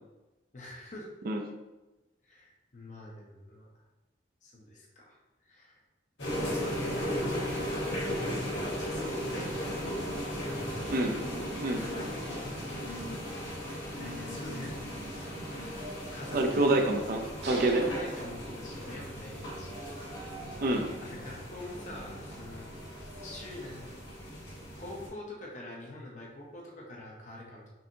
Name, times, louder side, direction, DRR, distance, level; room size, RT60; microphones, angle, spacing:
voice 1, 0.5-1.1 2.2-3.8 4.4-5.8 6.7-6.9 7.9-10.0 10.4-10.9 11.8-13.0 13.9-16.7 17.7-19.8 21.0-22.7 23.2-23.9 24.7-27.7, left 1 dB, 45° left, -2 dB, 0.8 m, -45 dB
sound 1, 6.2-25.1, equal, 90° left, 1.4 m, -37 dB
voice 2, 10.9-12.0 16.3-17.2 17.5-17.9 20.6-20.9, right 2 dB, 55° right, 3 dB, 0.5 m, -27 dB
sound 2, 11.3-23.9, right 1 dB, 90° right, 1.3 m, -50 dB
sound 3, 17.4-19.3, right 1 dB, 70° right, 0.9 m, -40 dB
5.5 x 2.7 x 2.7 m, 1.1 s
head